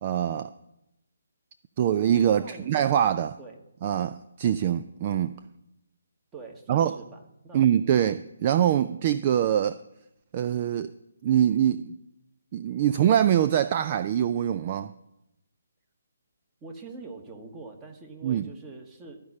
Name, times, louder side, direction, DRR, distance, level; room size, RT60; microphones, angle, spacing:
voice 1, 0.0-0.5 1.8-3.4 3.8-5.3 6.7-7.0 7.5-9.8 10.3-10.9 11.2-12.0 12.5-14.9 18.2-18.5, right 10 dB, 30° right, 12 dB, 0.3 m, -24 dB
voice 2, 2.4-2.7 3.4-3.6 6.3-8.1 16.6-19.2, right 3 dB, 15° right, 3 dB, 1.4 m, -44 dB
13.5 x 5.2 x 8.6 m, 0.88 s
figure-of-eight pair, 140°, 0 cm